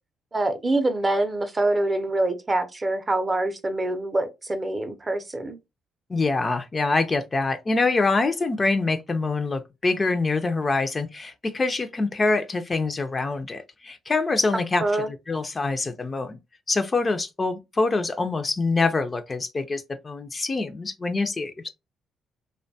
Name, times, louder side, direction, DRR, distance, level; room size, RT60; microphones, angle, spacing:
voice 1, 0.3-5.6 14.8-15.1, right 2 dB, 25° right, 0.5 m, -25 dB
voice 2, 6.1-14.8 15.3-16.4 16.7-21.7, left 3 dB, 30° left, 0.4 m, -25 dB
2.6 x 2.1 x 2.6 m
cardioid pair, 90°, 0 cm